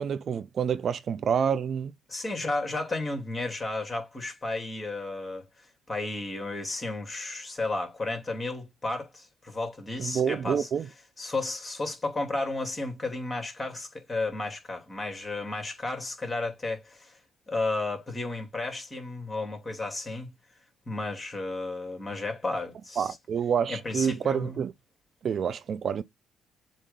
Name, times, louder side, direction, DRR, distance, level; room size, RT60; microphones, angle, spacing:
voice 1, 0.0-1.9 10.0-10.9 23.0-24.7 25.2-26.0, right 7 dB, 55° right, 0.5 m, -28 dB
voice 2, 2.1-5.5 5.9-10.7 11.2-17.2 17.5-20.3 20.9-23.1 23.7-24.6, left 2 dB, 25° left, 2.8 m, -33 dB
7.4 x 2.7 x 5.2 m
hypercardioid pair, 55°, 0 cm